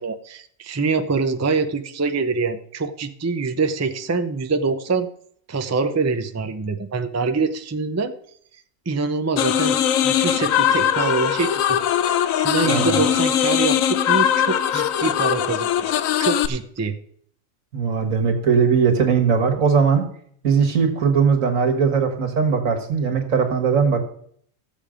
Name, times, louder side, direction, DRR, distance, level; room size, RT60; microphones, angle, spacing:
voice 1, 0.0-5.1 5.5-8.1 8.9-9.8 10.0-11.8 12.1-17.0, right 4 dB, 20° right, 8 dB, 0.4 m, -25 dB
sound 1, 9.4-16.5, left 10 dB, 85° left, 1.0 m, -20 dB
voice 2, 12.6-13.0 17.7-20.0 20.4-24.0, right 6 dB, 75° right, 4 dB, 1.9 m, -19 dB
15.0 x 7.2 x 5.0 m, 0.64 s
omnidirectional pair, 1.4 m